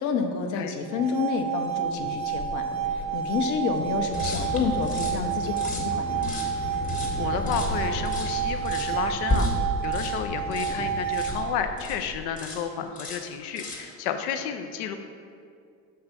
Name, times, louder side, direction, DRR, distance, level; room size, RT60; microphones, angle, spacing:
voice 1, 0.0-2.7 2.9-6.3, left 5 dB, 60° left, 4 dB, 0.8 m, -29 dB
sound 1, 0.8-11.8, right 8 dB, 45° right, 0.6 m, -30 dB
sound 2, 1.7-12.4, left 1 dB, ahead, 0.5 m, -40 dB
sound 3, 4.1-12.0 12.4-12.7 13.0-13.9, left 1 dB, 25° left, 1.1 m, -33 dB
voice 2, 7.2-9.5 9.8-15.0, left 8 dB, 90° left, 7 dB, 0.6 m, -31 dB
6.5 x 3.5 x 5.6 m, 2.3 s
cardioid pair, 135°, 34 cm